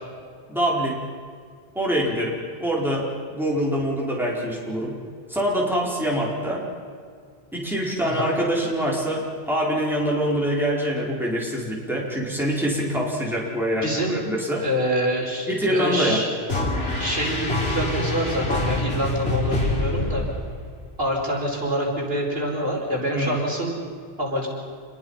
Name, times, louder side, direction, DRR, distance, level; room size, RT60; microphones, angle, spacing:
voice 1, 0.5-1.0 1.7-5.0 5.3-6.7 7.5-14.6 15.5-16.2 23.2-23.4, equal, ahead, -4 dB, 4.7 m, -25 dB
voice 2, 8.0-8.3 13.8-14.2 14.6-16.3 17.0-20.2 21.0-23.7 24.2-24.5, equal, 70° right, -2 dB, 5.4 m, -26 dB
sound 1, 16.5-20.8, left 2 dB, 85° left, 3.7 m, -26 dB
28.0 x 21.5 x 5.8 m, 2.1 s
omnidirectional pair, 1.0 m